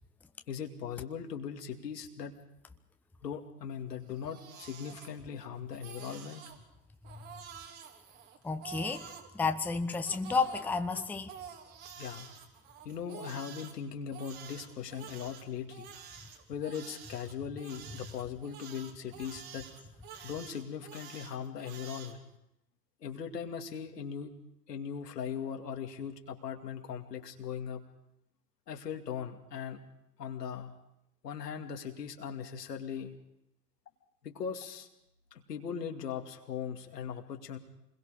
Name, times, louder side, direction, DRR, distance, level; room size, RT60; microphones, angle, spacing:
voice 1, 0.5-2.4 3.2-6.4 12.0-12.3 12.8-15.9 16.5-19.7 20.2-22.2 23.0-24.4 24.7-27.8 28.7-29.8 30.2-30.7 31.2-33.1 34.2-34.9 35.5-37.6, left 7 dB, 80° left, 4 dB, 2.5 m, -39 dB
Crying sobbing, 4.0-5.5 5.7-6.6 7.0-9.3 9.9-13.7 14.1-22.1, right 8 dB, 55° right, 3.7 m, -49 dB
voice 2, 8.4-9.0 9.3-11.3, left 4 dB, 5° left, 8 dB, 0.7 m, -31 dB
28.0 x 21.5 x 5.1 m, 0.81 s
hypercardioid pair, 100°, 48 cm